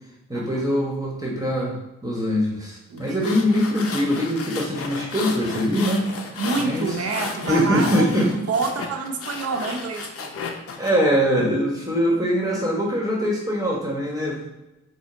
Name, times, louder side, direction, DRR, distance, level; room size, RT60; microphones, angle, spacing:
voice 1, 0.3-1.7 2.0-6.1 6.6-6.9 7.5-8.3 10.8-14.5, equal, 10° right, -3 dB, 1.1 m, -22 dB
voice 2, 2.9-3.3 6.4-10.4, right 4 dB, 55° right, 4 dB, 0.8 m, -28 dB
sound 1, 3.0-10.9, left 5 dB, 50° left, 0.7 m, -33 dB
5.1 x 2.1 x 3.7 m, 0.96 s
supercardioid pair, 65°, 30 cm